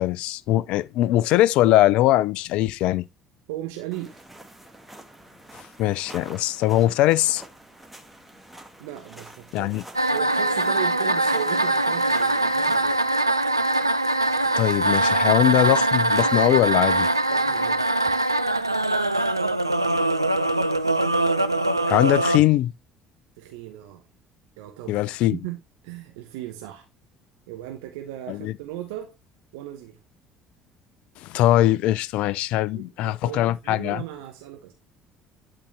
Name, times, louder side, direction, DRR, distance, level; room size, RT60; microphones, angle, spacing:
voice 1, 0.0-3.1 5.8-7.4 9.5-9.8 14.6-17.1 21.9-22.7 24.9-25.4 28.3-28.5 31.2-34.0, left 14 dB, 55° left, 0.4 m, -21 dB
voice 2, 3.5-4.3 8.8-9.7 10.1-13.0 17.3-17.9 23.4-24.0 24.6-25.0 25.3-25.6 25.8-26.9 27.5-29.2 29.5-30.0 32.7-34.7, right 13 dB, 65° right, 0.9 m, -36 dB
sound 1, 3.9-12.9, right 1 dB, 5° right, 1.8 m, -47 dB
sound 2, 9.9-22.4, right 2 dB, 90° right, 0.3 m, -22 dB
11.5 x 4.1 x 3.4 m
figure-of-eight pair, 55°, 2 cm